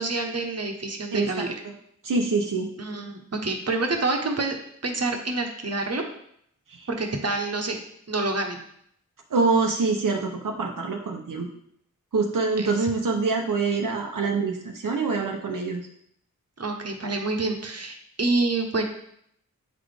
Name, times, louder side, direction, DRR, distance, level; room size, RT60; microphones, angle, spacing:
voice 1, 0.0-1.5 2.8-6.0 6.9-7.8 8.1-8.6 12.6-12.9 16.6-18.8, right 3 dB, 50° right, 3 dB, 1.0 m, -27 dB
voice 2, 1.1-1.7 2.0-2.7 6.7-6.9 9.3-11.5 12.1-15.9, right 4 dB, 85° right, 1 dB, 0.7 m, -25 dB
8.3 x 4.1 x 3.4 m, 0.70 s
wide cardioid pair, 50°, 32 cm